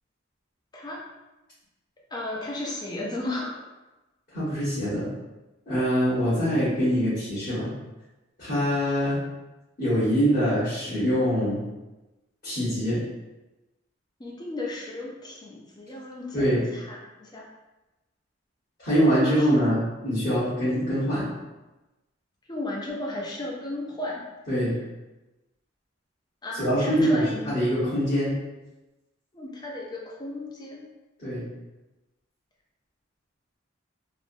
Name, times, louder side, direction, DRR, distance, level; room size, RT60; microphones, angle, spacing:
voice 1, 2.1-3.6 14.2-17.5 19.4-19.6 22.5-24.3 26.4-27.5 29.3-30.9, left 2 dB, 20° left, -3 dB, 0.5 m, -34 dB
voice 2, 4.3-5.1 5.7-7.7 8.4-9.2 9.8-11.6 12.4-13.0 16.3-16.6 18.8-21.3 24.5-24.7 26.6-28.4 31.2-31.5, equal, 50° left, -14 dB, 1.3 m, -24 dB
3.3 x 2.0 x 2.6 m, 1.1 s
head